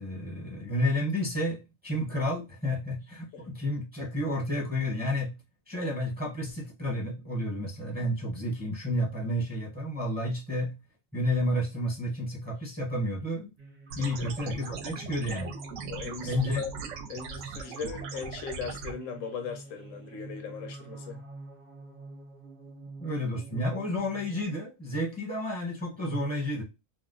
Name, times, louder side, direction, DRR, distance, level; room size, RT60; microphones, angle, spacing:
voice 1, 0.0-5.3 5.7-10.7 11.1-13.5 14.0-15.5 16.2-16.6 23.0-26.6, left 1 dB, 10° right, 0.7 m, -31 dB
sound 1, 13.6-24.4, right 2 dB, 40° right, 0.9 m, -46 dB
sound 2, 13.9-18.9, right 6 dB, 70° right, 0.9 m, -40 dB
voice 2, 15.9-21.2, left 6 dB, 75° left, 1.0 m, -39 dB
2.7 x 2.1 x 3.7 m
omnidirectional pair, 1.4 m